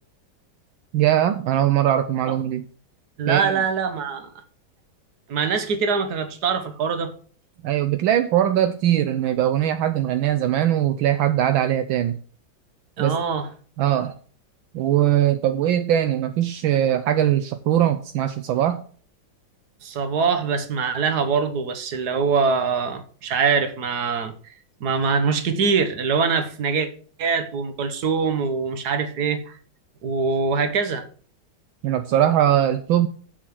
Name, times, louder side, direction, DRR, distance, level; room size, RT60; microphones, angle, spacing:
voice 1, 0.9-2.7 3.3-3.6 7.6-12.2 13.0-13.1 13.8-14.1 14.7-18.8 31.8-33.1, right 11 dB, 75° right, 1.4 m, -21 dB
voice 2, 3.2-4.3 5.3-7.1 13.0-13.5 19.8-24.3 24.8-26.9 27.2-29.6 30.0-31.0, right 5 dB, 55° right, 1.6 m, -23 dB
7.3 x 7.3 x 6.1 m
omnidirectional pair, 2.2 m